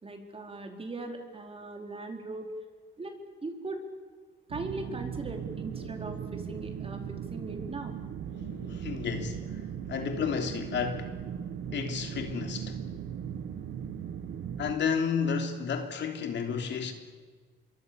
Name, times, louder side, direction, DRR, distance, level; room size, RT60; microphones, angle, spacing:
voice 1, 0.0-2.5 3.0-3.1 3.4-3.8 4.5-7.9, right 2 dB, 30° right, 4.4 m, -39 dB
sound 1, 4.5-14.7, right 8 dB, 75° right, 1.5 m, -38 dB
voice 2, 5.8-6.2 6.5-6.6 8.3-11.1 11.7-12.8 14.6-16.9, left 6 dB, 65° left, 3.2 m, -32 dB
27.0 x 23.0 x 7.0 m
cardioid pair, 90°, 20 cm